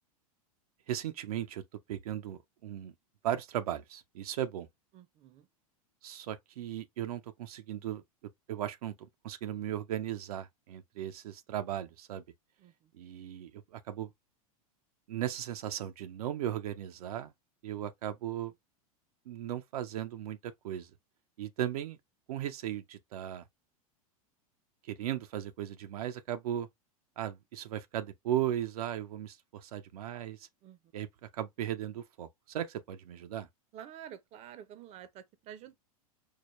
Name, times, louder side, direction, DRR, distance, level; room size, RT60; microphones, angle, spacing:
voice 1, 0.9-1.6 1.9-2.9 3.2-4.7 6.0-8.0 8.5-8.9 9.2-12.2 12.9-14.1 15.1-17.3 17.6-18.5 19.3-20.9 21.4-22.0 22.3-23.4 24.9-26.7 27.2-30.5 30.9-33.5, right 11 dB, 80° right, 0.6 m, -37 dB
voice 2, 4.9-5.5 12.6-12.7 30.6-30.8 33.7-35.7, right 10 dB, 35° right, 0.6 m, -49 dB
4.7 x 2.2 x 3.0 m
hypercardioid pair, 125°, 19 cm